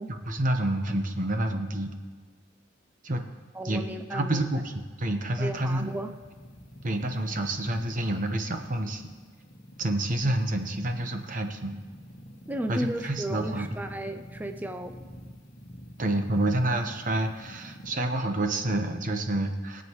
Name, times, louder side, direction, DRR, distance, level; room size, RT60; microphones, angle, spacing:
voice 1, 0.3-1.9 3.0-3.2 3.6-3.8 4.1-4.6 5.0-5.9 6.8-9.0 9.8-11.8 12.7-13.8 16.0-19.8, right 1 dB, 45° right, 5 dB, 1.0 m, -28 dB
voice 2, 3.5-4.5 5.4-6.1 12.5-15.0, right 1 dB, 10° right, 7 dB, 0.4 m, -34 dB
sound 1, 5.5-18.0, equal, 35° left, 1.3 m, -47 dB
22.0 x 7.8 x 3.1 m, 1.5 s
head